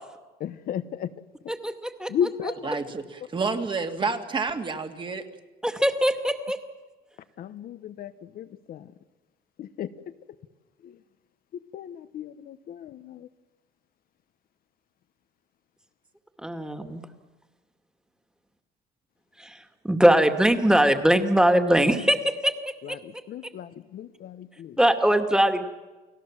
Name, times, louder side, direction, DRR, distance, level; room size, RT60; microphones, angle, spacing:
voice 1, 0.4-1.1 2.1-2.7 7.4-8.9 9.6-9.9 10.8-10.9 11.7-13.3 22.8-24.8, left 9 dB, 60° left, 12 dB, 1.0 m, -34 dB
voice 2, 1.5-2.1 2.4-2.5 5.6-6.6 16.4-17.0 19.4-19.6 19.8-22.5 22.9-23.0 24.8-25.7, right 1 dB, 5° right, 7 dB, 2.2 m, -21 dB
voice 3, 2.6-5.3, right 4 dB, 30° right, 6 dB, 2.2 m, -29 dB
29.5 x 18.0 x 7.4 m, 1.2 s
cardioid pair, 110°, 17 cm